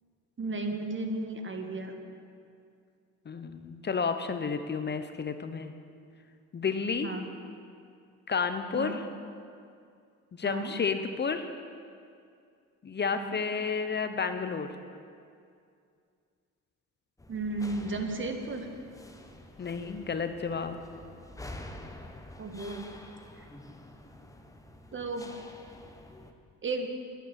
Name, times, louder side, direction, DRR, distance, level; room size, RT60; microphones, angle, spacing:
voice 1, 0.4-1.9 7.0-7.3 8.7-9.0 10.4-10.7 13.1-13.4 17.3-18.7 22.4-22.9 24.9-25.3 26.6-26.9, right 2 dB, 40° right, 5 dB, 1.7 m, -34 dB
voice 2, 3.3-5.7 6.5-7.1 8.3-9.0 10.3-11.5 12.8-14.7 19.6-20.8, left 5 dB, 35° left, 9 dB, 0.8 m, -31 dB
sound 1, 17.2-26.3, left 1 dB, 10° left, 1.2 m, -48 dB
11.0 x 9.3 x 8.7 m, 2.3 s
cardioid pair, 90°, 30 cm